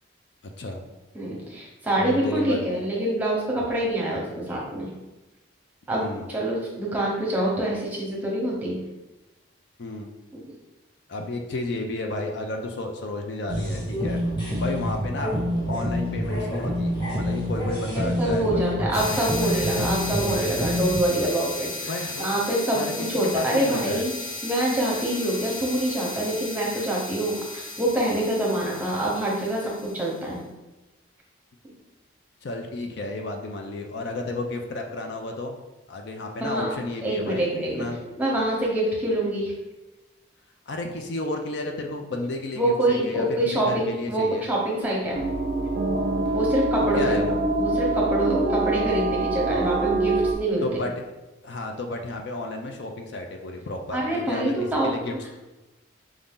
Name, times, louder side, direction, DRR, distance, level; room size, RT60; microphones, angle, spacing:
voice 1, 1.1-4.9 5.9-6.0 6.3-8.8 10.3-10.6 18.2-21.9 22.2-24.1 24.4-30.4 36.4-36.7 37.0-37.9 38.2-39.5 42.5-45.2 46.3-47.1 47.5-50.7 53.9-54.9, right 1 dB, 10° right, -4 dB, 0.9 m, -25 dB
voice 2, 2.0-2.6 5.9-6.3 9.8-10.1 11.1-14.2 14.6-15.3 15.7-19.5 21.8-22.3 22.7-22.9 23.2-24.0 32.4-35.5 35.9-37.5 37.7-38.1 40.7-44.4 47.0-47.4 50.6-51.0 51.4-54.6 54.8-55.3, left 2 dB, 55° left, 3 dB, 0.4 m, -32 dB
sound 1, 13.5-21.0, equal, 25° left, 1.0 m, -27 dB
sound 2, 18.9-30.2, left 2 dB, 85° left, 1.2 m, -35 dB
sound 3, 45.1-50.3, right 2 dB, 45° right, 0.5 m, -25 dB
4.8 x 2.7 x 3.6 m, 1.1 s
head